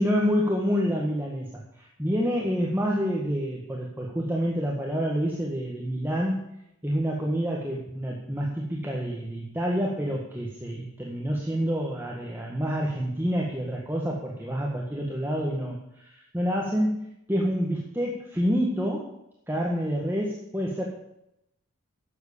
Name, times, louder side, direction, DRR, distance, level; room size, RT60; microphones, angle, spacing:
voice 1, 0.0-6.4 6.8-19.1 19.5-20.8, equal, 10° right, -3 dB, 1.7 m, -28 dB
12.0 x 8.1 x 8.6 m, 0.80 s
head